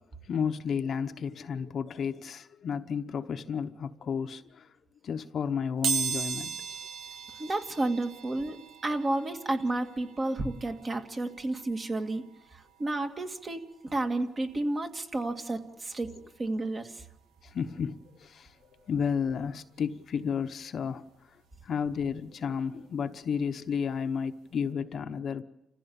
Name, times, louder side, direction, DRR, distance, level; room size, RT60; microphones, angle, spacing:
voice 1, 0.2-4.7 5.0-6.9 17.4-21.4 21.6-25.4, left 6 dB, 55° left, 1.0 m, -32 dB
sound 1, 5.8-16.5 17.0-17.1 18.2-18.3 18.6-20.7 21.1-23.7 24.0-24.2 24.5-24.6, right 6 dB, 85° right, 1.3 m, -39 dB
voice 2, 7.4-8.6 8.8-12.2 12.5-16.1 16.4-17.1, right 2 dB, 35° right, 2.1 m, -31 dB
29.0 x 15.0 x 7.1 m
cardioid pair, 90°, 0 cm